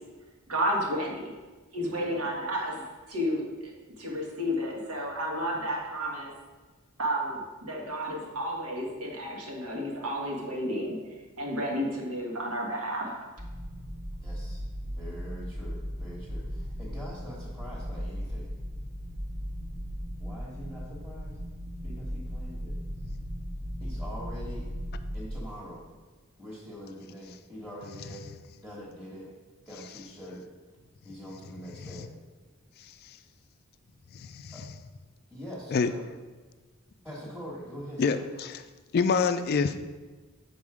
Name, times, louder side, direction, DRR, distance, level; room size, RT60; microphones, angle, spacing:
voice 1, 0.5-1.3 1.7-6.3 7.0-11.0 11.4-13.3, equal, 90° right, -1 dB, 1.5 m, -32 dB
voice 2, 1.8-2.2 14.2-18.5 20.2-21.4 21.8-22.8 23.8-24.7 25.1-25.8 26.4-28.2 28.6-29.3 29.6-30.5 31.0-32.1 34.5-34.6 35.3-36.0 37.0-38.3, equal, 5° right, -8 dB, 1.2 m, -43 dB
sound 1, 13.4-25.3, equal, 70° right, 1.6 m, -37 dB
voice 3, 34.1-34.5 35.7-35.9 38.0-38.5 38.9-39.8, left 5 dB, 45° left, 10 dB, 0.3 m, -26 dB
7.1 x 4.1 x 4.9 m, 1.3 s
head